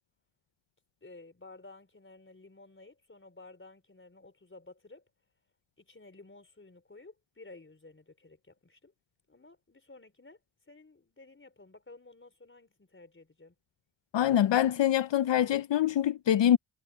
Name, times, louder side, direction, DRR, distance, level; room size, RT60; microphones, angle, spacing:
voice 1, 1.0-5.1 5.8-8.9 9.3-10.4 10.7-13.5, left 2 dB, 25° left, 4.4 m, -53 dB
voice 2, 14.1-16.6, left 11 dB, 70° left, 0.7 m, -24 dB
cardioid pair, 70°, 45 cm